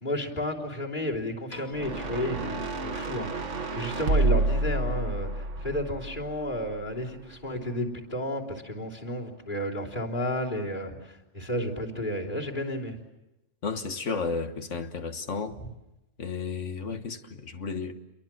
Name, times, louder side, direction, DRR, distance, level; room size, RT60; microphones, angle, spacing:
voice 1, 0.0-3.5 3.7-13.0, left 1 dB, 40° left, 3.7 m, -32 dB
Piano, 1.5-3.8, left 1 dB, 60° left, 4.3 m, -50 dB
sound 1, 1.7-7.0, right 2 dB, 80° right, 1.9 m, -29 dB
voice 2, 13.6-15.6 16.2-17.9, left 4 dB, 80° left, 1.8 m, -33 dB
29.5 x 23.0 x 7.6 m
omnidirectional pair, 1.2 m